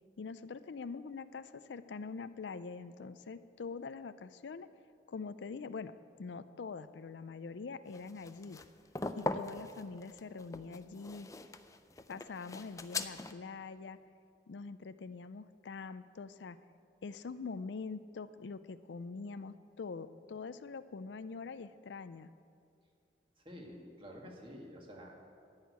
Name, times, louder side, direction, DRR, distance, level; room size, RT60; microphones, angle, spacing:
voice 1, 0.2-4.7 5.1-5.9 6.2-8.6 9.2-11.3 12.1-14.0 14.5-16.6 17.0-22.3, left 4 dB, 75° left, 13 dB, 0.4 m, -44 dB
sound 1, 7.9-13.3, left 3 dB, 20° left, 0.4 m, -41 dB
voice 2, 23.4-25.1, equal, 30° right, -1 dB, 2.0 m, -49 dB
13.0 x 6.5 x 9.5 m, 2.5 s
head